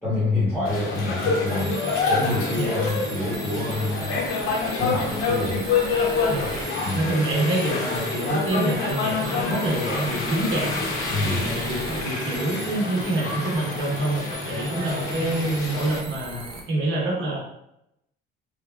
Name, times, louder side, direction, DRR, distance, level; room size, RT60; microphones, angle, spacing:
voice 1, 0.0-1.8 2.1-4.2 4.8-5.7 6.8-7.1 11.1-11.5, left 2 dB, 5° left, -11 dB, 0.9 m, -27 dB
sound 1, 0.6-16.0, left 4 dB, 85° left, 0.7 m, -27 dB
sound 2, 1.5-16.6, right 3 dB, 25° right, 0.3 m, -39 dB
voice 2, 6.9-10.7 11.2-17.4, right 2 dB, 70° right, -3 dB, 1.1 m, -26 dB
3.3 x 2.0 x 2.3 m, 0.80 s
cardioid pair, 170°, 21 cm